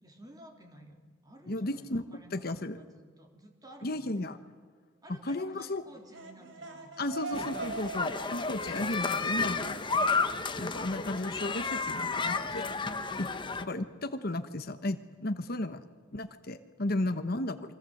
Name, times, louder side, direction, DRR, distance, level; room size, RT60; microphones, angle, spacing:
voice 1, 0.0-4.3 5.0-7.6 10.6-11.4 13.1-13.7 17.0-17.3, right 1 dB, 20° right, 3 dB, 3.5 m, -54 dB
voice 2, 1.5-2.0 2.3-2.8 3.8-4.4 5.1-5.8 7.0-9.8 10.6-12.7 13.2-13.3 13.6-15.8 16.1-17.6, left 1 dB, 50° left, 9 dB, 1.1 m, -34 dB
sound 1, 5.9-10.6, right 3 dB, 70° right, 3.3 m, -43 dB
sound 2, 7.3-13.6, left 4 dB, 25° left, 1.2 m, -32 dB
29.0 x 24.0 x 7.9 m, 1.4 s
head